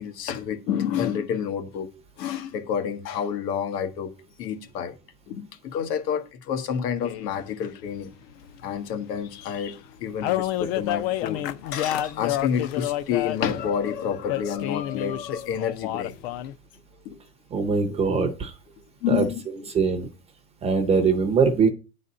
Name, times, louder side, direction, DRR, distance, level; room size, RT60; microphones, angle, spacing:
voice 1, 0.0-1.9 2.2-4.1 4.4-5.0 5.3-8.1 8.6-16.1 17.0-17.2 17.7-18.0 19.0-19.7, left 8 dB, 90° left, 1.8 m, -29 dB
sound 1, 7.0-7.4 9.1-9.2 9.5-9.6 9.8-9.9 10.2-13.7 14.3-16.5, left 13 dB, 40° left, 0.5 m, -29 dB
voice 2, 17.5-18.5 19.1-19.3 19.7-20.1 20.6-21.7, right 5 dB, 15° right, 0.6 m, -22 dB
9.6 x 4.1 x 7.4 m
supercardioid pair, 175°, 47 cm